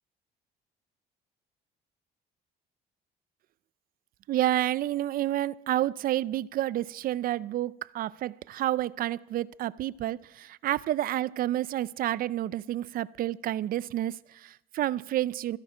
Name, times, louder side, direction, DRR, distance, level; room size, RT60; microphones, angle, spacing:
voice 1, 4.3-15.6, right 13 dB, 60° right, 21 dB, 0.5 m, -29 dB
26.0 x 11.0 x 5.0 m, 0.89 s
cardioid pair, 110°, 17 cm